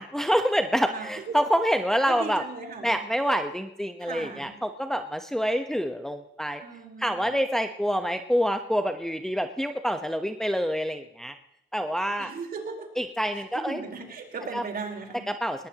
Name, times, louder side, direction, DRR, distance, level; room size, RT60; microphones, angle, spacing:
voice 1, 0.0-2.4 2.8-6.6 7.0-11.3 11.7-12.3 13.0-13.8 14.5-14.6 15.3-15.7, equal, ahead, 6 dB, 1.1 m, -27 dB
voice 2, 0.9-1.3 2.1-3.0 4.0-4.5 6.6-7.3 12.2-12.9 13.3-15.2, right 4 dB, 50° right, 2 dB, 4.4 m, -37 dB
19.5 x 19.5 x 3.0 m, 0.82 s
cardioid pair, 90°, 20 cm